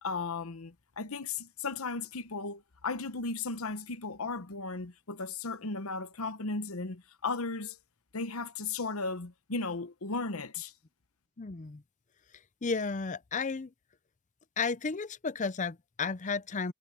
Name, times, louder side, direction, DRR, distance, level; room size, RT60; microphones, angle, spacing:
voice 1, 0.0-7.8 8.1-10.7, left 3 dB, 85° left, 1.1 m, -36 dB
voice 2, 11.4-11.8 12.6-13.7 14.6-16.7, left 4 dB, 35° left, 0.6 m, -33 dB
head